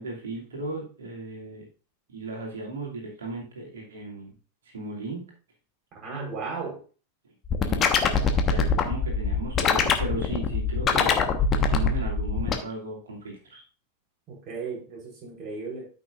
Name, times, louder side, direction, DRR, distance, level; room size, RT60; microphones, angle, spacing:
voice 1, 0.0-1.7 2.1-4.3 4.7-5.2 7.7-11.1 11.5-13.6, right 2 dB, 65° right, 2.5 m, -36 dB
voice 2, 5.9-6.8 14.3-15.9, right 4 dB, 30° right, 4.0 m, -35 dB
sound 1, 7.5-12.6, left 6 dB, 25° left, 1.2 m, -23 dB
13.0 x 5.7 x 2.5 m
figure-of-eight pair, 90°, 0 cm